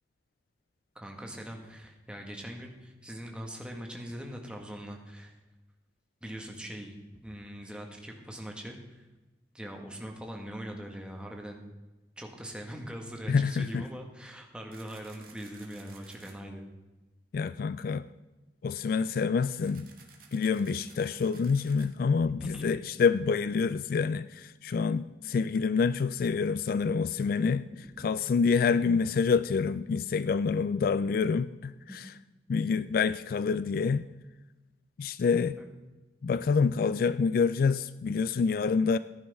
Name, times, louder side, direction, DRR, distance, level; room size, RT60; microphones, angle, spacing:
voice 1, 0.9-5.3 6.2-7.0 7.2-9.0 9.5-11.6 12.2-16.6 22.4-22.6 28.0-28.2 31.9-32.1 35.6-35.7, equal, 5° right, 1.5 m, -42 dB
voice 2, 13.3-13.9 17.3-18.1 18.6-19.9 20.3-27.7 28.0-32.1 32.5-34.1 35.0-35.6 36.2-39.0, left 5 dB, 50° left, 0.3 m, -27 dB
sound 1, 14.7-16.3 19.6-21.9, right 6 dB, 55° right, 1.9 m, -55 dB
15.0 x 10.5 x 3.5 m
head